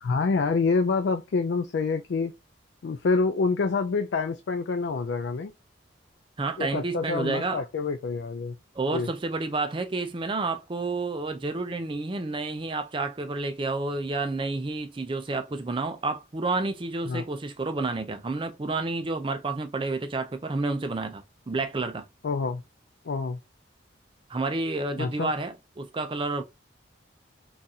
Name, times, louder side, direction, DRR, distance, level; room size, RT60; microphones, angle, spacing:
voice 1, 0.0-2.3 2.8-5.5 6.6-8.6 8.9-9.1 17.1-17.2 22.2-22.6 23.0-23.4 25.0-25.3, left 4 dB, 65° left, 0.3 m, -27 dB
voice 2, 6.4-7.6 8.7-22.1 24.3-26.4, right 3 dB, 25° right, 0.4 m, -30 dB
3.8 x 2.4 x 2.7 m
head